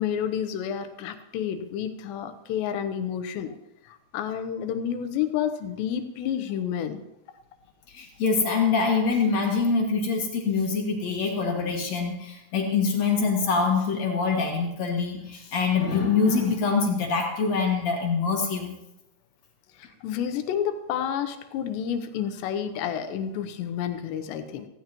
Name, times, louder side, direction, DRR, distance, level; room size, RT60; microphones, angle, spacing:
voice 1, 0.0-3.6 3.9-7.0 19.8-24.7, left 9 dB, 85° left, 8 dB, 3.1 m, -30 dB
voice 2, 7.9-18.8, left 5 dB, 55° left, 1 dB, 2.2 m, -24 dB
17.5 x 15.0 x 3.0 m, 0.90 s
omnidirectional pair, 4.9 m